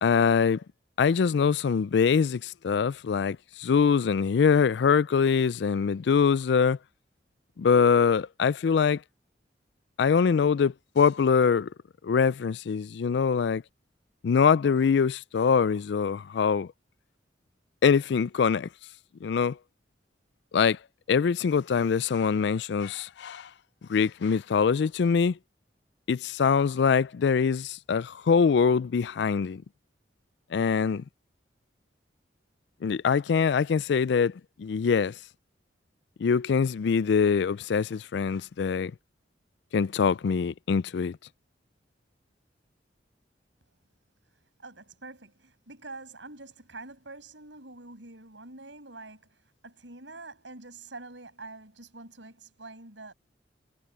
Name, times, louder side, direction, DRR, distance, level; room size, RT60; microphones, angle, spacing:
voice 1, 0.0-0.6 1.0-6.8 7.6-9.0 10.0-11.7 12.0-13.6 14.2-16.7 17.8-18.7 19.2-19.6 20.5-20.8 21.1-23.5 23.9-25.3 26.1-29.6 30.5-31.0 32.8-34.3 34.6-35.1 36.2-38.9 39.7-41.2, left 6 dB, 65° left, 0.4 m, -23 dB
voice 2, 44.3-53.1, right 3 dB, 80° right, 6.7 m, -46 dB
head